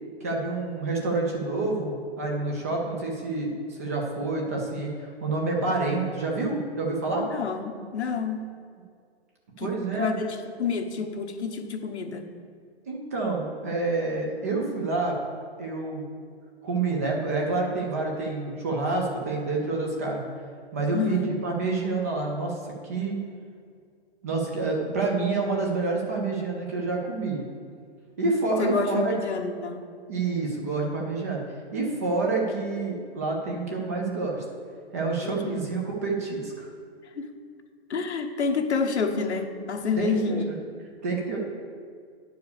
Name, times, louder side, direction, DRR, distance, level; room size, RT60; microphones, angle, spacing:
voice 1, 0.2-7.3 9.6-10.1 12.9-15.2 15.6-16.0 16.6-20.2 20.7-22.6 22.8-23.2 24.2-27.4 28.2-29.1 30.1-31.4 31.7-34.4 34.9-36.7 40.0-40.4 41.0-41.4, right 3 dB, 15° right, -1 dB, 0.5 m, -28 dB
voice 2, 7.2-8.4 9.6-12.3 20.9-21.3 28.6-29.8 35.2-35.6 37.2-37.3 37.9-40.5, left 5 dB, 85° left, 5 dB, 1.2 m, -29 dB
9.5 x 4.7 x 6.6 m, 2.2 s
hypercardioid pair, 165°, 33 cm